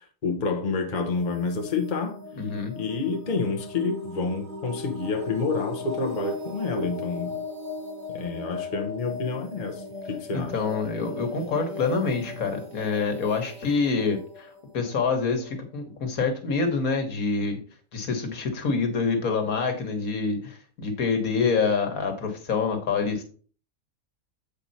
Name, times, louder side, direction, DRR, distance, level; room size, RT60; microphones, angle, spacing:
voice 1, 0.0-2.2 2.7-7.4 8.1-10.6, left 4 dB, 35° left, 1.0 m, -28 dB
sound 1, 1.0-15.6, left 3 dB, 70° right, 2.9 m, -38 dB
voice 2, 2.4-2.7 10.3-17.6 17.9-23.2, left 4 dB, 80° left, 1.8 m, -26 dB
7.6 x 5.1 x 4.1 m
omnidirectional pair, 1.5 m